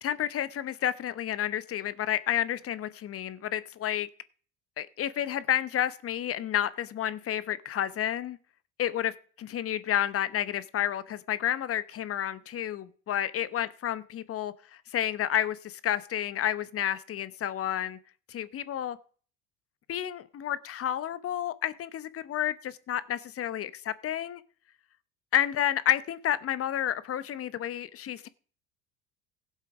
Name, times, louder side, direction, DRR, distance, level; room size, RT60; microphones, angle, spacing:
voice 1, 0.0-4.1 4.8-8.4 8.8-18.0 18.3-19.0 19.9-24.4 25.3-28.3, left 11 dB, 40° left, 1.0 m, -30 dB
16.5 x 7.5 x 4.9 m
hypercardioid pair, 75°, 34 cm